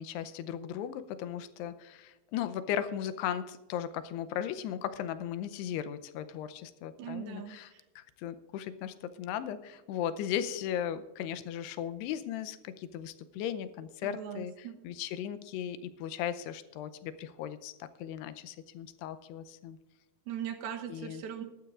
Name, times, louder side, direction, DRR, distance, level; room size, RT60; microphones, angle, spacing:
voice 1, 0.0-19.8 20.9-21.2, left 10 dB, 90° left, 12 dB, 2.8 m, -37 dB
voice 2, 7.0-7.8 14.0-14.8 20.3-21.4, right 9 dB, 75° right, 5 dB, 2.8 m, -40 dB
20.5 x 12.0 x 2.5 m, 1.1 s
omnidirectional pair, 4.6 m